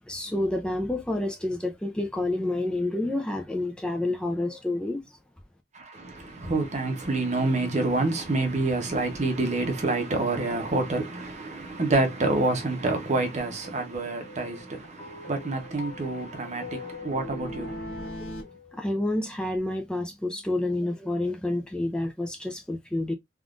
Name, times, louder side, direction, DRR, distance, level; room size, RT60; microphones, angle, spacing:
voice 1, 0.1-5.2 18.0-18.3 18.7-23.1, left 1 dB, 5° left, 0.4 m, -29 dB
voice 2, 5.7-18.3, right 2 dB, 40° right, 0.8 m, -28 dB
sound 1, 13.6-14.9 15.2-18.4, equal, 65° left, 1.3 m, -42 dB
sound 2, 15.0-19.4, left 5 dB, 35° left, 1.4 m, -45 dB
3.5 x 2.4 x 2.4 m
head